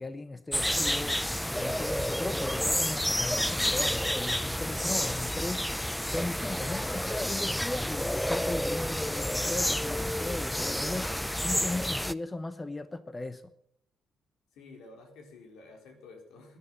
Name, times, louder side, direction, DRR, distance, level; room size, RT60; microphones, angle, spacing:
voice 1, 0.0-13.5, left 2 dB, 20° left, 12 dB, 0.9 m, -37 dB
sound 1, 0.5-12.1, equal, 5° left, 0.5 m, -30 dB
voice 2, 14.5-16.6, left 3 dB, 85° left, 3 dB, 4.1 m, -51 dB
15.0 x 10.5 x 7.4 m, 0.72 s
cardioid pair, 90°, 0 cm